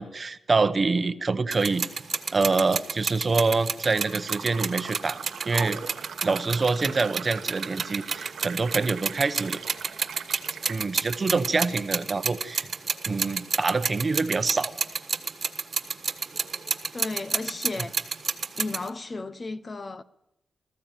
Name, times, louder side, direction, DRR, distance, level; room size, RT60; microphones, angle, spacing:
voice 1, 0.0-1.9 2.3-5.2 5.4-5.8 6.2-9.6 10.7-12.7 13.0-14.7, right 3 dB, 35° right, 0.9 m, -26 dB
sound 1, 1.5-18.9, right 5 dB, 50° right, 1.4 m, -30 dB
Fill (with liquid), 2.7-10.8, right 7 dB, 90° right, 1.0 m, -42 dB
voice 2, 16.9-18.0 18.5-20.0, left 3 dB, 35° left, 0.8 m, -34 dB
20.0 x 14.5 x 9.1 m
wide cardioid pair, 120°, 0 cm